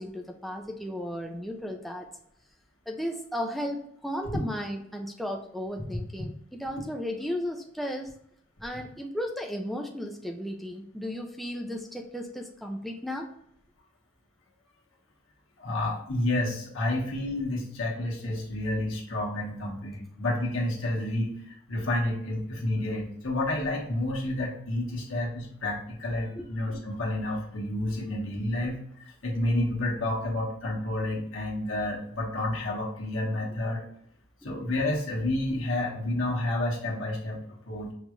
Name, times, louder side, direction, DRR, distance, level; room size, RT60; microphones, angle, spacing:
voice 1, 0.0-2.1 2.9-8.2 8.6-13.3 26.4-26.5, equal, ahead, 1 dB, 0.4 m, -35 dB
voice 2, 15.6-33.8 34.4-37.9, left 1 dB, 80° left, -2 dB, 1.3 m, -30 dB
5.5 x 2.4 x 3.0 m, 0.69 s
head